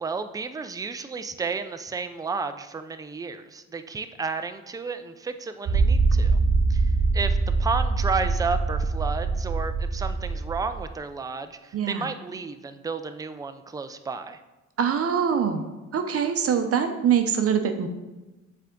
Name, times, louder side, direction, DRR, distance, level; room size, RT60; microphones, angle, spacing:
voice 1, 0.0-6.4 6.7-14.4, right 4 dB, 10° right, 9 dB, 0.3 m, -32 dB
sound 1, 5.7-10.9, right 3 dB, 75° right, 1.0 m, -23 dB
voice 2, 11.7-12.1 14.8-15.7 15.9-17.9, right 7 dB, 50° right, 7 dB, 0.7 m, -24 dB
7.4 x 3.5 x 3.8 m, 1.1 s
cardioid pair, 90°, 30 cm